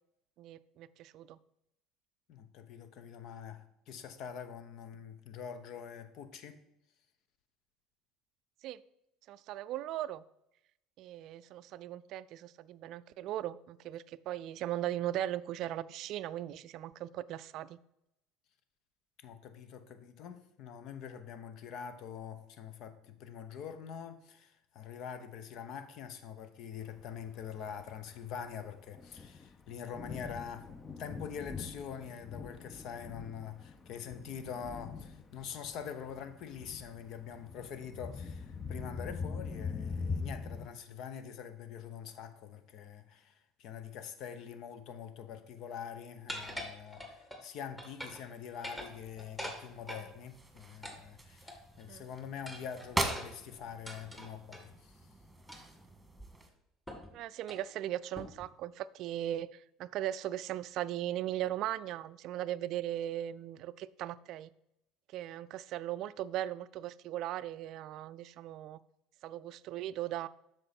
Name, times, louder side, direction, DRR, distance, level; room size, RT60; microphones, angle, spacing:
voice 1, 0.4-1.4 8.6-8.8 9.3-10.2 11.0-17.8 51.9-52.0 57.1-64.5 65.1-68.8 69.2-70.3, right 12 dB, 60° right, 0.3 m, -38 dB
voice 2, 2.3-6.6 19.2-55.0, left 7 dB, 60° left, 0.9 m, -45 dB
Thunder, 27.0-40.7, left 5 dB, 25° left, 0.7 m, -43 dB
sound 1, 46.3-47.4 47.8-48.3 48.5-50.1 50.8-51.8 52.5-54.7 55.5-55.8 56.2-56.3 56.9-57.1 57.4-57.7 58.2-58.5, equal, 10° left, 1.9 m, -44 dB
sound 2, 48.8-56.5, right 2 dB, 10° right, 1.8 m, -42 dB
7.8 x 6.1 x 4.2 m
hypercardioid pair, 70°, 0 cm